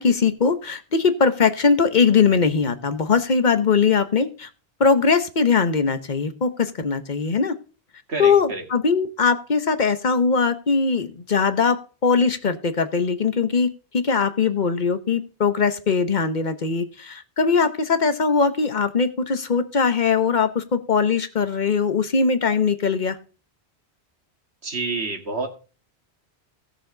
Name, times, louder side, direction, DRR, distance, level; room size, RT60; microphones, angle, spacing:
voice 1, 0.0-4.5 4.8-7.5 8.2-23.2, left 5 dB, 45° left, 10 dB, 1.0 m, -21 dB
voice 2, 8.1-8.6 24.6-25.5, right 3 dB, 70° right, 3 dB, 2.1 m, -28 dB
16.5 x 6.4 x 3.8 m, 0.36 s
omnidirectional pair, 1.1 m